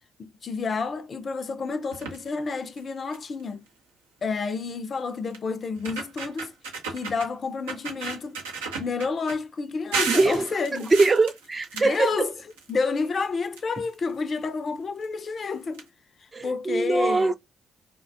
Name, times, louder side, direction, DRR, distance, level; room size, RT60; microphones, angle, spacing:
voice 1, 0.2-3.7 4.2-6.5 6.9-8.4 8.8-10.9 11.7-12.3 12.7-15.8 16.4-17.3, left 4 dB, 50° left, 0.4 m, -29 dB
sound 1, 1.9-2.3 2.8-2.9 3.1-3.4 4.6-4.7 5.3-5.4 5.7-7.3 7.7-9.4 9.9-12.7 13.0-14.1 15.0-15.1 15.4-15.5 15.7-15.8, right 5 dB, 90° right, 0.5 m, -33 dB
voice 2, 10.1-10.5 10.9-12.3 16.3-17.3, right 3 dB, 35° right, 0.4 m, -22 dB
2.4 x 2.1 x 2.5 m
hypercardioid pair, 45°, 0 cm